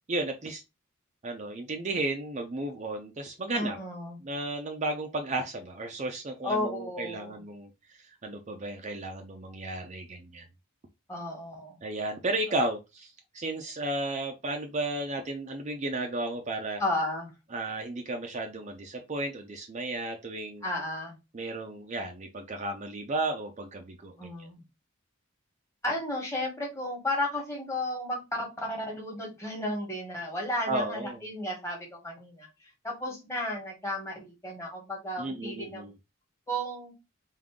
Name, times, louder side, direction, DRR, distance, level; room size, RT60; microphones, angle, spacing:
voice 1, 0.1-0.6 1.2-3.8 4.2-10.4 11.8-16.8 17.5-20.6 21.3-24.5 30.7-31.2 35.2-35.9, right 2 dB, 35° right, 4 dB, 0.5 m, -34 dB
voice 2, 3.5-4.2 6.4-7.4 11.1-11.8 16.8-17.3 20.6-21.1 24.2-24.6 25.8-35.9 36.5-36.9, left 1 dB, 15° left, -1 dB, 1.3 m, -33 dB
3.7 x 2.6 x 3.5 m, 0.25 s
head